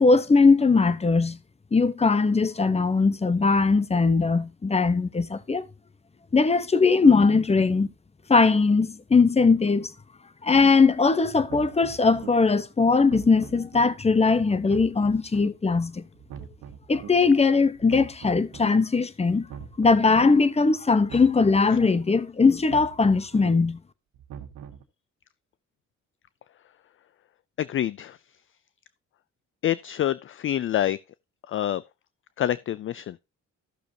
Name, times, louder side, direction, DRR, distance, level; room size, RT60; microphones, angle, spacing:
voice 1, 0.0-1.4 1.7-5.7 6.3-7.9 8.3-9.9 10.4-16.1 16.9-19.5 19.8-23.8, left 4 dB, 20° left, 1.0 m, -20 dB
sound 1, 10.5-10.7 11.3-12.3 12.9-13.9 14.5-15.5 16.1-17.1 17.7-18.7 19.3-20.3 20.9-21.9 22.5-23.5 24.1-24.8, right 9 dB, 85° right, 1.7 m, -42 dB
voice 2, 27.6-28.2 29.6-31.0 31.5-31.8 32.4-33.2, left 11 dB, 45° left, 0.4 m, -26 dB
14.5 x 6.6 x 2.8 m
cardioid pair, 90°, 30 cm